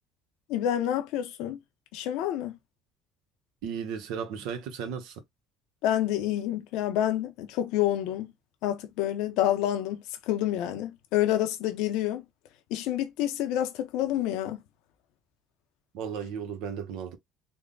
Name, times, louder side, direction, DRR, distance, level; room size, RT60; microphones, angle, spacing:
voice 1, 0.5-1.6 1.9-2.5 5.8-8.3 8.6-12.2 12.7-14.6, left 12 dB, 80° left, 0.7 m, -28 dB
voice 2, 3.6-5.2 15.9-17.2, right 7 dB, 80° right, 0.9 m, -35 dB
3.5 x 2.2 x 3.8 m
cardioid pair, 105°, 0 cm